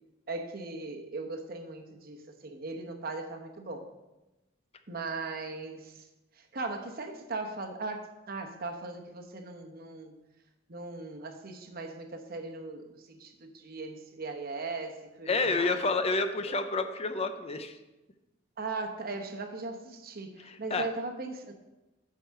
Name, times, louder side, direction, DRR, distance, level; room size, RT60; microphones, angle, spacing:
voice 1, 0.3-3.9 4.9-6.1 6.4-10.2 10.7-15.8 16.5-16.6 18.6-21.5, right 3 dB, 50° right, 4 dB, 1.0 m, -38 dB
voice 2, 15.3-17.8 20.4-20.8, left 3 dB, 30° left, 8 dB, 0.5 m, -29 dB
8.1 x 4.8 x 6.5 m, 1.0 s
head